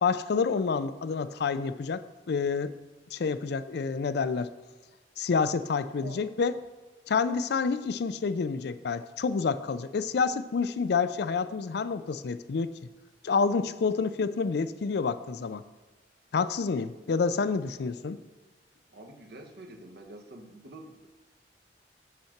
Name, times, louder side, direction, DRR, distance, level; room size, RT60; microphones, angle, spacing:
voice 1, 0.0-2.7 3.1-4.5 5.2-6.5 7.1-12.7 13.2-15.6 16.3-18.2, left 5 dB, 65° left, 13 dB, 0.4 m, -28 dB
voice 2, 18.9-21.1, right 1 dB, 65° right, 3 dB, 1.1 m, -47 dB
7.5 x 5.7 x 5.8 m, 1.2 s
head